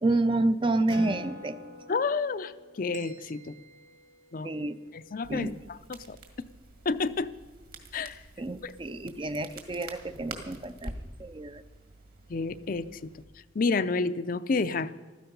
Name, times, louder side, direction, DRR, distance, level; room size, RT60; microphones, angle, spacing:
voice 1, 0.0-1.6 4.4-4.8 5.3-5.6 8.4-10.9 11.2-11.6, right 2 dB, 30° right, 12 dB, 0.5 m, -29 dB
Acoustic guitar, 0.9-5.8, left 1 dB, 70° right, 2.0 m, -46 dB
voice 2, 1.9-2.5 2.8-3.5 4.3-4.5 4.9-6.2 6.9-7.3 7.9-8.2 8.6-8.7 12.3-13.1 13.6-14.9, left 4 dB, 50° left, 13 dB, 0.5 m, -29 dB
sound 1, 2.9-4.9, right 6 dB, 85° right, 2.5 m, -55 dB
Crackle, 5.2-13.2, right 2 dB, 55° right, 2.0 m, -47 dB
15.0 x 13.0 x 5.4 m, 1.3 s
head